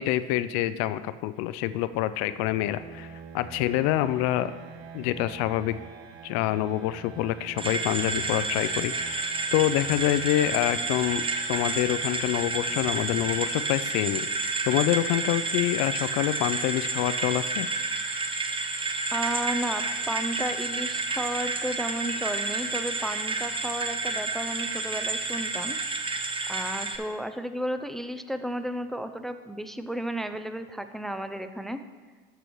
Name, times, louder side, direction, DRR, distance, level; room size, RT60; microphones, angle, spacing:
voice 1, 0.0-3.1 3.3-4.5 4.9-5.8 6.2-11.2 11.5-17.7, left 14 dB, 65° left, 14 dB, 0.4 m, -26 dB
sound 1, 1.4-14.3, right 5 dB, 65° right, 1.1 m, -47 dB
sound 2, 7.6-27.0, right 3 dB, 20° right, 0.8 m, -30 dB
voice 2, 19.1-25.8 26.5-31.8, right 1 dB, ahead, 9 dB, 0.4 m, -33 dB
12.5 x 6.8 x 3.0 m, 1.4 s
supercardioid pair, 90°, 29 cm